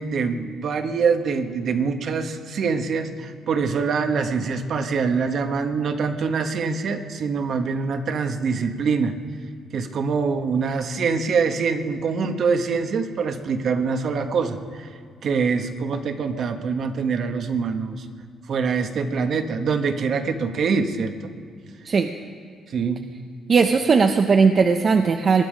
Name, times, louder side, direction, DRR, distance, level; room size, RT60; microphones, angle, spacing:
voice 1, 0.0-9.2 9.7-18.1 18.5-21.3 22.7-23.0, right 5 dB, 60° right, 7 dB, 1.3 m, -24 dB
voice 2, 23.5-25.4, right 5 dB, 45° right, 6 dB, 0.8 m, -18 dB
21.0 x 11.0 x 5.2 m, 2.2 s
cardioid pair, 90°, 0 cm